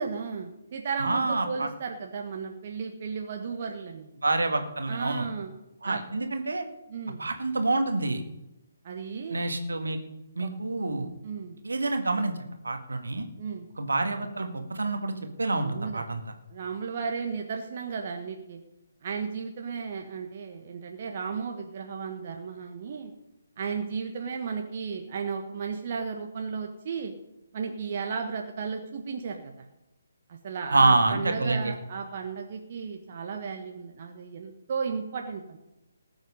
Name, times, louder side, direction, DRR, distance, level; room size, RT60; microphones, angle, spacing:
voice 1, 0.0-4.1 4.9-5.5 5.8-6.0 6.9-7.2 8.8-9.4 10.4-10.5 11.2-11.6 13.4-13.7 15.6-16.2 16.5-18.6 19.0-23.1 23.6-27.1 27.5-29.5 30.3-35.6, right 5 dB, 40° right, 3 dB, 1.4 m, -34 dB
voice 2, 1.0-1.7 4.2-5.3 5.8-6.7 7.2-8.2 9.3-10.0 10.4-11.1 11.6-12.4 12.6-13.3 13.8-16.2 30.7-31.7, right 2 dB, 70° right, 6 dB, 2.0 m, -27 dB
19.5 x 8.0 x 5.4 m, 0.93 s
figure-of-eight pair, 140°, 0 cm